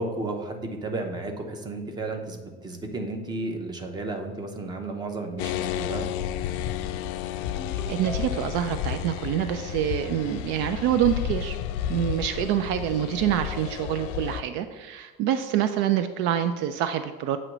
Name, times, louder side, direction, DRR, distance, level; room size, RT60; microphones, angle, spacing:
voice 1, 0.0-6.1, right 2 dB, 20° right, 4 dB, 0.8 m, -33 dB
sound 1, 5.4-14.4, left 10 dB, 75° left, 0.4 m, -32 dB
Ringtone, 7.6-8.7, left 2 dB, 10° left, 0.4 m, -40 dB
voice 2, 7.9-11.6 11.9-17.4, right 10 dB, 70° right, 9 dB, 0.4 m, -26 dB
7.7 x 3.0 x 6.0 m, 1.3 s
cardioid pair, 150°, 20 cm